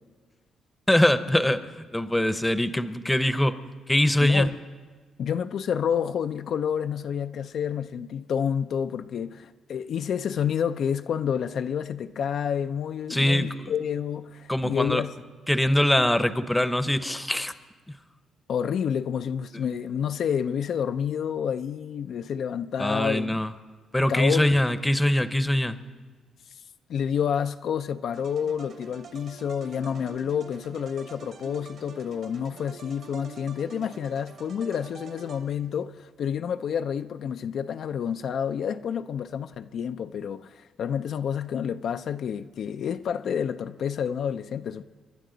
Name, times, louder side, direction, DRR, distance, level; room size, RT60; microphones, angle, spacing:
voice 1, 0.9-4.5 13.1-13.7 14.5-15.0 15.5-17.5 17.9-18.0 22.8-23.5 23.9-25.8, left 1 dB, 10° left, 0.7 m, -23 dB
voice 2, 4.2-4.5 5.2-15.1 18.5-23.4 24.1-24.6 26.9-44.8, left 8 dB, 65° left, 0.4 m, -29 dB
sound 1, 28.1-35.9, right 4 dB, 65° right, 2.3 m, -46 dB
29.0 x 12.0 x 3.9 m
cardioid pair, 90°, 0 cm